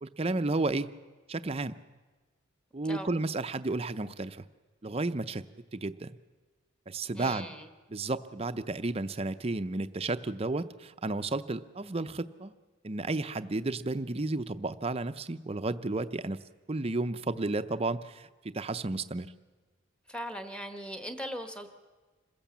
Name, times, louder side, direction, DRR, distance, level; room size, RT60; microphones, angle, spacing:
voice 1, 0.0-0.9 1.3-1.7 2.7-4.4 4.8-5.4 5.7-6.1 6.9-7.5 7.9-12.5 12.8-16.4 16.7-19.3, right 2 dB, 30° right, 11 dB, 0.6 m, -32 dB
voice 2, 7.1-7.7 20.1-21.7, equal, 5° left, 7 dB, 1.3 m, -39 dB
26.5 x 16.0 x 7.3 m, 1.3 s
head